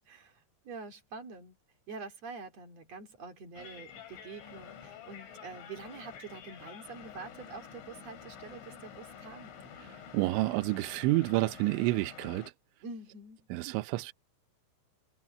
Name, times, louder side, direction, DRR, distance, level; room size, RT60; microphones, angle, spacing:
voice 1, 0.0-1.5 1.9-9.6 12.8-13.5, right 4 dB, 40° right, 3.0 m, -46 dB
sound 1, 3.6-12.5, left 7 dB, 70° left, 5.9 m, -49 dB
voice 2, 10.1-12.5 13.5-14.1, right 19 dB, 80° right, 2.9 m, -29 dB
omnidirectional pair, 6.0 m